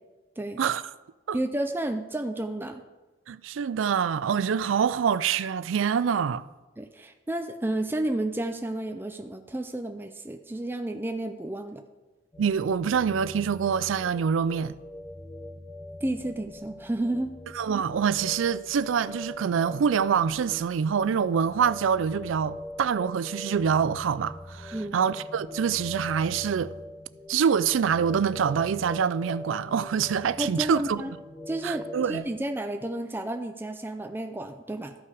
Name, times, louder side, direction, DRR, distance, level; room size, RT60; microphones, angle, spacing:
voice 1, 1.3-2.8 6.8-11.8 16.0-17.3 24.7-25.0 30.4-31.1 31.5-35.0, right 1 dB, 10° right, 0.4 m, -31 dB
voice 2, 3.3-6.4 12.4-14.8 17.6-26.7 27.3-31.0 31.6-32.3, right 7 dB, 80° right, 0.4 m, -25 dB
sound 1, 12.3-32.2, left 1 dB, 15° left, 0.8 m, -42 dB
13.5 x 5.7 x 4.8 m
head